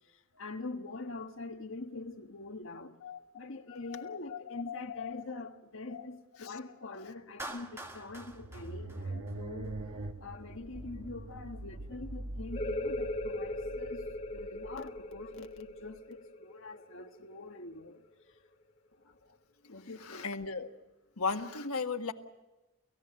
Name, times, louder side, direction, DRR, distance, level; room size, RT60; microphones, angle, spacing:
voice 1, 0.1-3.0 3.3-9.8 10.2-18.0 19.7-20.3, left 3 dB, 60° left, 1.3 m, -44 dB
voice 2, 3.9-5.4 5.9-6.1 6.4-6.5 20.0-20.7 21.2-22.1, left 5 dB, 85° left, 1.5 m, -37 dB
Clapping, 7.4-9.7, right 1 dB, 10° right, 1.6 m, -45 dB
sound 1, 7.6-16.0, right 2 dB, 80° right, 1.4 m, -43 dB
sound 2, 12.5-17.9, left 1 dB, 25° left, 1.6 m, -39 dB
29.5 x 15.0 x 7.7 m
head